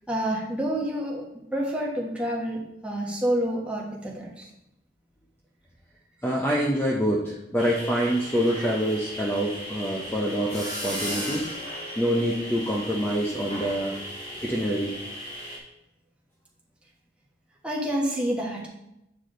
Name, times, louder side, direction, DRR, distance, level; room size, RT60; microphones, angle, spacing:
voice 1, 0.1-1.2 1.5-4.5 17.6-18.7, right 1 dB, 5° right, -3 dB, 1.3 m, -28 dB
voice 2, 6.2-11.5 12.0-13.9 14.4-15.0, equal, 10° left, -3 dB, 0.7 m, -26 dB
sound 1, 7.6-15.6, equal, 40° left, 2.2 m, -36 dB
8.5 x 4.8 x 3.8 m, 0.86 s
head